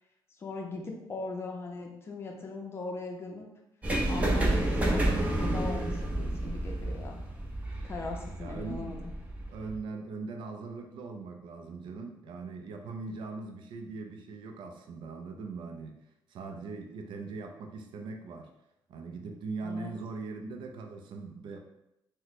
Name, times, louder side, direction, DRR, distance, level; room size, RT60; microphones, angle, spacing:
voice 1, 0.4-3.5 4.1-5.1 5.3-7.2 7.8-9.1 19.6-19.9, left 3 dB, 30° left, 1 dB, 0.5 m, -39 dB
sound 1, 3.8-9.8, right 1 dB, 15° right, 0.6 m, -30 dB
voice 2, 8.4-8.9 9.5-16.0 16.3-18.5 18.9-21.6, right 4 dB, 70° right, 4 dB, 0.4 m, -40 dB
3.0 x 2.1 x 4.0 m, 0.87 s
cardioid pair, 160°, 9 cm